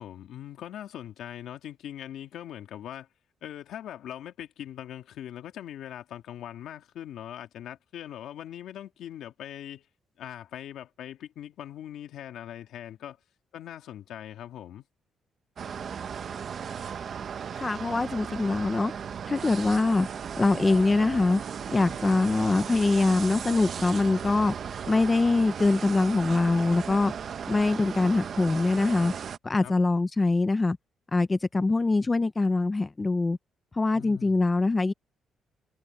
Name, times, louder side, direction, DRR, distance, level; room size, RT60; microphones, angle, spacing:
voice 1, 0.0-3.1 3.4-9.9 10.2-13.2 13.5-14.8 29.6-29.7 33.9-34.4, left 11 dB, 75° left, 2.4 m, -41 dB
sound 1, 15.6-29.4, right 7 dB, 40° right, 1.0 m, -36 dB
voice 2, 17.6-18.9 19.3-20.1 20.4-21.4 21.7-24.5 24.9-27.1 27.5-29.1 29.4-30.8 31.1-33.4 33.7-34.9, left 3 dB, 15° left, 0.6 m, -23 dB
cardioid pair, 175°, 0 cm